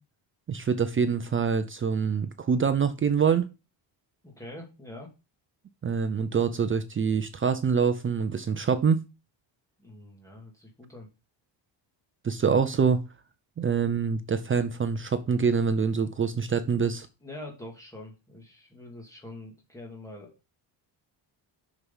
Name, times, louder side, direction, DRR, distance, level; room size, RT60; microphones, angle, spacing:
voice 1, 0.5-3.5 5.8-9.0 12.2-13.0 13.6-17.1, right 6 dB, 25° right, 0.6 m, -25 dB
voice 2, 4.2-5.1 9.8-11.1 17.2-20.4, left 1 dB, 5° left, 2.3 m, -44 dB
6.5 x 6.1 x 5.5 m
cardioid pair, 160°, 46 cm